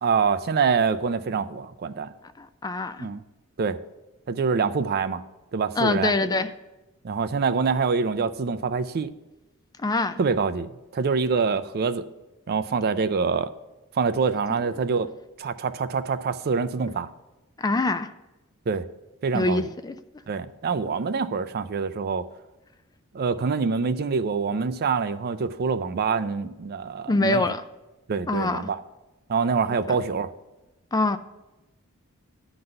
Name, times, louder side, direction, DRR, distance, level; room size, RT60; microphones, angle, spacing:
voice 1, 0.0-2.1 3.0-3.2 3.6-3.8 4.3-5.2 5.5-6.1 7.0-9.1 10.2-12.0 12.5-13.5 13.9-15.1 15.4-17.1 18.7-18.8 19.2-19.7 20.3-22.3 23.1-27.4 28.1-28.8 29.3-30.3, right 5 dB, 45° right, 0.4 m, -25 dB
voice 2, 2.4-3.1 5.8-6.5 9.8-10.2 17.6-18.1 19.3-19.9 27.1-27.6 28.3-28.6 30.9-31.2, left 2 dB, 20° left, 0.4 m, -24 dB
10.5 x 4.0 x 7.7 m
head